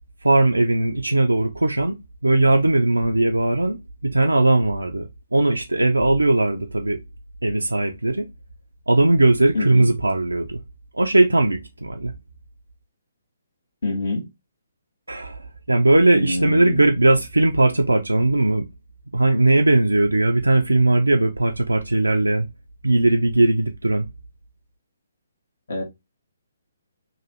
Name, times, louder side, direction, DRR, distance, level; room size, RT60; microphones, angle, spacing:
voice 1, 0.2-7.0 7.4-8.3 8.9-10.6 10.9-12.1 15.1-18.7 19.1-22.5 22.8-24.1, right 2 dB, 85° right, 0.3 m, -19 dB
voice 2, 9.5-9.9 13.8-14.3 16.1-16.9 25.7-25.8, left 2 dB, 60° left, 1.2 m, -26 dB
3.0 x 2.3 x 2.9 m
figure-of-eight pair, 135°, 0 cm